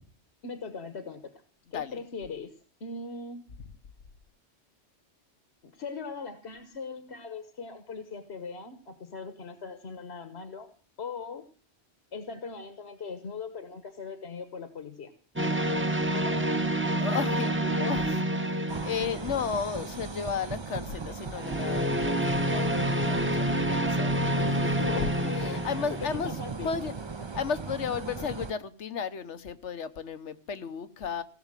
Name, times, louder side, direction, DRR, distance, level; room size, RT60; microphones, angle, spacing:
voice 1, 0.4-1.2 1.7-2.5 2.8-3.4 5.6-10.7 11.0-11.4 12.1-15.1 16.1-16.6 24.4-26.7, left 4 dB, 70° left, 1.5 m, -40 dB
sound 1, 15.4-19.8 21.3-26.2, right 1 dB, 10° right, 1.0 m, -28 dB
voice 2, 17.0-26.3 26.6-26.9 27.3-31.2, left 6 dB, 85° left, 1.4 m, -34 dB
sound 2, 18.7-28.5, right 4 dB, 30° right, 0.7 m, -38 dB
17.5 x 7.1 x 8.9 m
omnidirectional pair, 1.1 m